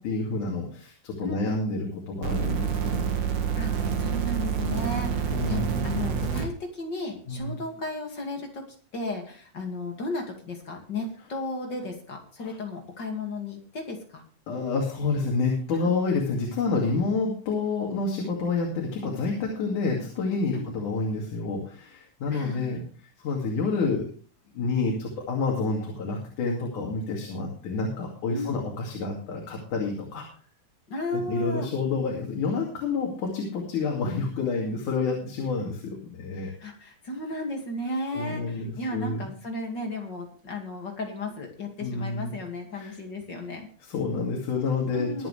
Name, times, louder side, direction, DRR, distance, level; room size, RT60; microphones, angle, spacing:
voice 1, 0.0-3.1 5.3-6.2 7.3-7.6 12.4-12.6 14.5-22.8 23.2-24.1 24.5-30.3 31.1-36.5 38.1-39.3 41.8-42.3 42.7-42.9 43.8-45.3, left 4 dB, 75° left, -1 dB, 4.0 m, -29 dB
voice 2, 1.2-1.6 3.6-8.6 8.9-14.2 15.7-15.9 20.5-20.7 22.3-22.8 28.3-28.6 30.9-31.7 36.6-43.7 44.9-45.3, left 2 dB, 35° left, 2 dB, 2.6 m, -34 dB
sound 1, 2.2-6.5 7.4-7.5, right 7 dB, 70° right, 3.2 m, -27 dB
23.0 x 7.8 x 3.3 m, 0.42 s
omnidirectional pair, 3.5 m